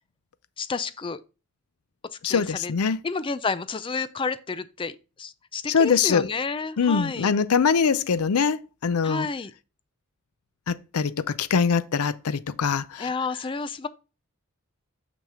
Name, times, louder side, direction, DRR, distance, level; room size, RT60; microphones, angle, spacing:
voice 1, 0.6-1.2 2.2-2.7 3.0-7.3 9.0-9.5 13.0-13.9, left 4 dB, 25° left, 0.4 m, -30 dB
voice 2, 2.2-3.0 5.7-6.3 6.8-9.3 10.7-13.1, left 6 dB, 80° left, 0.5 m, -23 dB
6.1 x 5.8 x 3.6 m
head